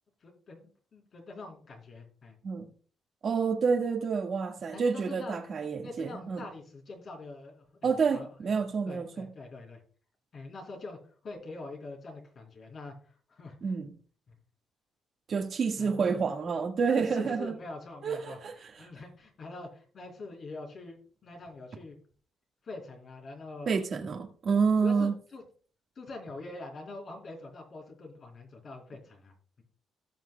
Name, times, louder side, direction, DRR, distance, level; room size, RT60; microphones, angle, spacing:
voice 1, 0.2-2.4 4.7-5.4 5.8-8.3 8.9-9.8 10.3-13.7 15.8-16.2 16.9-22.0 22.6-23.8 24.5-25.4 26.0-29.6, left 3 dB, 50° left, 3.5 m, -44 dB
voice 2, 3.2-6.4 7.8-9.3 13.6-13.9 15.3-17.5 18.0-18.7 23.7-25.1, right 5 dB, 50° right, 1.6 m, -28 dB
18.0 x 6.3 x 2.2 m
cardioid pair, 90°, 0 cm